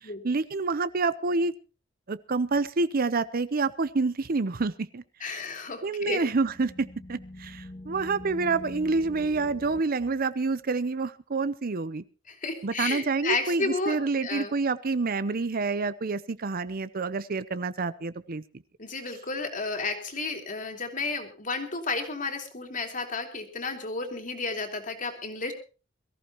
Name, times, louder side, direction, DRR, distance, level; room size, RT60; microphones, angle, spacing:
voice 1, 0.0-1.5 2.1-5.4 5.8-12.0 12.6-18.4, right 3 dB, 50° right, 16 dB, 0.7 m, -28 dB
voice 2, 5.2-6.2 12.3-14.5 18.8-25.5, left 3 dB, 40° left, 4 dB, 2.9 m, -32 dB
sound 1, 6.2-9.8, left 1 dB, 25° left, 1.1 m, -43 dB
22.5 x 14.5 x 3.0 m, 0.34 s
head